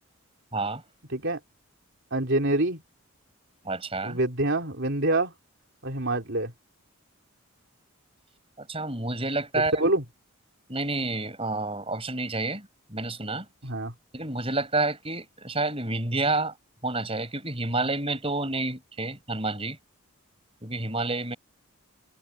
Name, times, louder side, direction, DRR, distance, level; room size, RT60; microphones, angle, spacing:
voice 1, 0.5-0.8 3.6-4.2 8.6-9.7 10.7-13.5 14.1-16.5 16.8-19.8 20.6-21.4, right 2 dB, 25° right, 6.1 m, -29 dB
voice 2, 2.1-2.8 4.0-5.3 5.8-6.5 9.6-10.0 13.6-13.9, right 2 dB, 55° right, 3.9 m, -26 dB
head